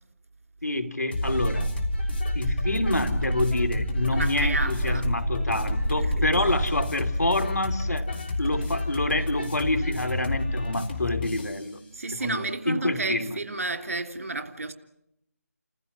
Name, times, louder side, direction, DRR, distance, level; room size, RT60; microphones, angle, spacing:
voice 1, 0.6-1.7 2.3-8.1 8.4-11.8 12.1-13.4, left 2 dB, 80° left, 3.1 m, -27 dB
sound 1, 1.1-11.7, left 2 dB, 35° left, 3.3 m, -30 dB
sound 2, 1.2-6.9, right 2 dB, 10° right, 1.1 m, -30 dB
voice 2, 4.1-5.1 6.0-6.4 11.9-14.7, right 3 dB, 55° right, 3.3 m, -32 dB
30.0 x 15.5 x 9.7 m
figure-of-eight pair, 160°, 9 cm